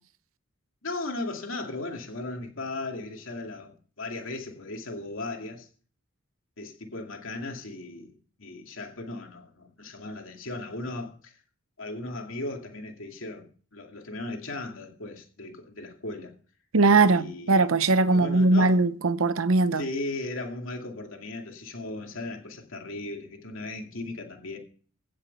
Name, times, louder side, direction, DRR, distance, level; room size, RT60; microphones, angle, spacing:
voice 1, 0.8-5.7 6.6-8.1 8.4-11.4 11.8-16.3 17.0-17.7 18.1-18.8 19.8-24.6, left 2 dB, 70° left, 2.5 m, -37 dB
voice 2, 16.7-19.8, right 3 dB, 80° right, 0.8 m, -20 dB
16.5 x 6.7 x 5.5 m
head